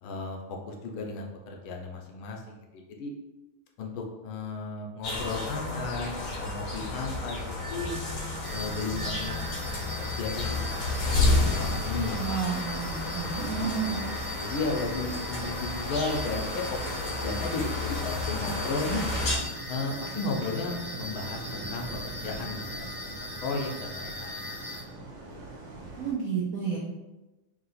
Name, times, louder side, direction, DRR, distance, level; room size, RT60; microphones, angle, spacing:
voice 1, 0.0-3.1 3.8-7.4 7.7-7.9 8.5-10.8 11.5-12.2 13.1-14.0 14.4-17.0 17.2-19.0 19.7-23.1 23.4-24.5 25.3-25.4, left 3 dB, 75° left, 1 dB, 1.4 m, -34 dB
sound 1, 5.0-19.4, left 2 dB, 55° left, 0.9 m, -31 dB
sound 2, 8.4-24.8, left 1 dB, 25° left, 0.4 m, -40 dB
voice 2, 12.2-14.0 26.0-26.8, right 6 dB, 85° right, -4 dB, 0.7 m, -31 dB
sound 3, 18.3-26.1, right 3 dB, 65° right, 1.5 m, -42 dB
3.7 x 2.8 x 4.1 m, 1.1 s
omnidirectional pair, 2.4 m